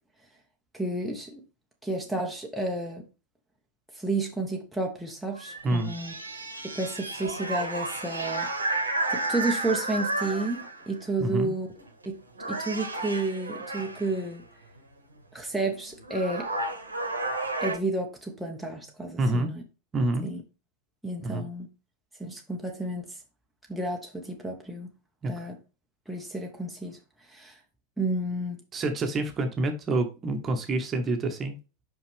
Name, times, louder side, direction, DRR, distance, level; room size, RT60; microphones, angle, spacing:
voice 1, 0.7-1.4 1.8-3.0 4.0-6.1 6.6-8.5 9.1-11.7 12.0-12.2 12.5-14.4 15.3-16.5 17.6-19.6 20.2-20.4 21.0-21.7 22.2-23.1 23.7-24.9 25.3-25.6 26.1-27.0 27.3-27.6 28.0-28.6, right 2 dB, ahead, 1.2 m, -31 dB
sound 1, 5.4-10.9 11.8-12.1 12.4-14.2 15.6-15.7 16.0-17.8, right 2 dB, 80° right, 1.2 m, -32 dB
voice 2, 11.2-11.5 19.2-19.5 19.9-20.2 21.2-21.4 25.2-25.5 28.7-31.6, right 2 dB, 25° right, 1.3 m, -27 dB
5.6 x 5.4 x 3.4 m
figure-of-eight pair, 90°, 0 cm